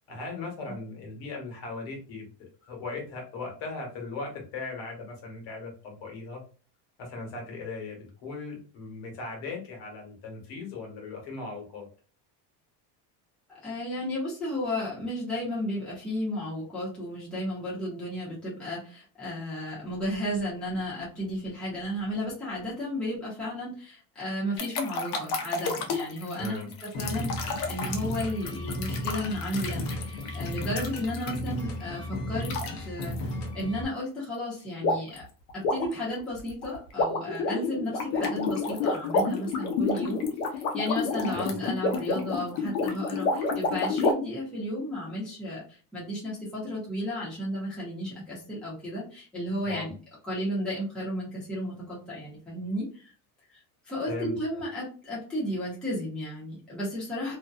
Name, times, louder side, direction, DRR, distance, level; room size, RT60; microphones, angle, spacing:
voice 1, 0.1-6.4 7.0-11.9 26.4-26.7 41.3-41.7 49.6-49.9 54.1-54.3, left 3 dB, 60° left, 1 dB, 1.2 m, -38 dB
voice 2, 13.6-32.6 32.8-35.3 35.5-40.2 40.5-49.9 50.3-53.1 53.9-57.4, equal, ahead, -8 dB, 0.7 m, -33 dB
sound 1, 24.6-31.6 32.4-32.7 33.0-33.2 34.8-35.2 35.5-44.1, left 3 dB, 75° left, 0.8 m, -29 dB
sound 2, 26.9-33.8, left 1 dB, 40° left, 0.6 m, -34 dB
2.6 x 2.2 x 2.3 m, 0.38 s
cardioid pair, 165°, 43 cm